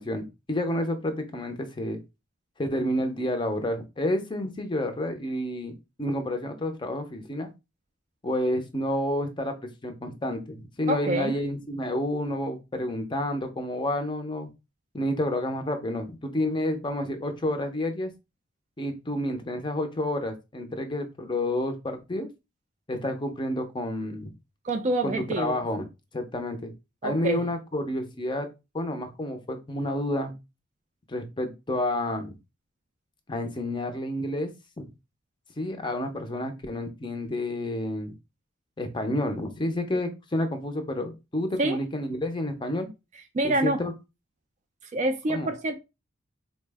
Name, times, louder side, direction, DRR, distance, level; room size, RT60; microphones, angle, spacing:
voice 1, 0.0-2.0 2.6-5.7 6.0-7.5 8.2-9.5 9.8-14.5 14.9-18.1 18.8-22.3 22.9-24.3 25.0-25.8 26.1-26.7 27.0-28.5 28.7-30.3 31.1-32.3 33.3-34.5 34.8-34.9 35.6-38.1 38.8-42.9 43.4-43.9 45.3-45.5, left 1 dB, 20° left, 0.5 m, -29 dB
voice 2, 10.9-11.3 24.6-25.6 27.0-27.4 41.6-41.8 43.3-43.8 44.9-45.7, right 1 dB, 35° right, 0.3 m, -26 dB
4.1 x 2.1 x 3.3 m
head